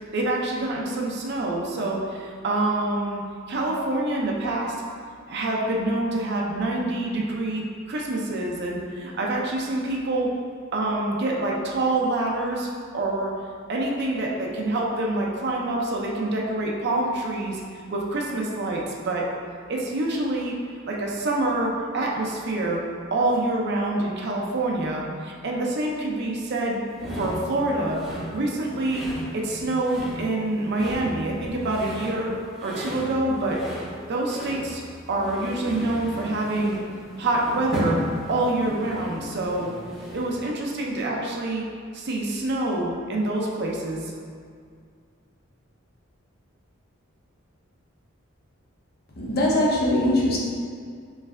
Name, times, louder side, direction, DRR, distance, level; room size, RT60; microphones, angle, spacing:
voice 1, 0.1-3.2 3.5-4.7 5.3-10.3 10.7-12.7 12.9-13.3 13.7-17.6 17.9-19.3 19.7-20.5 20.9-22.8 23.1-26.8 27.2-28.0 28.3-29.1 29.3-32.3 32.6-33.6 34.1-34.8 35.1-36.8 37.2-38.0 38.3-39.7 40.1-41.6 41.9-44.1, right 2 dB, 55° right, -2 dB, 0.5 m, -26 dB
sound 1, 26.9-40.4, equal, 5° right, 1.0 m, -35 dB
voice 2, 49.2-50.4, left 1 dB, 50° left, -4 dB, 0.7 m, -21 dB
3.2 x 3.2 x 3.6 m, 2.1 s
head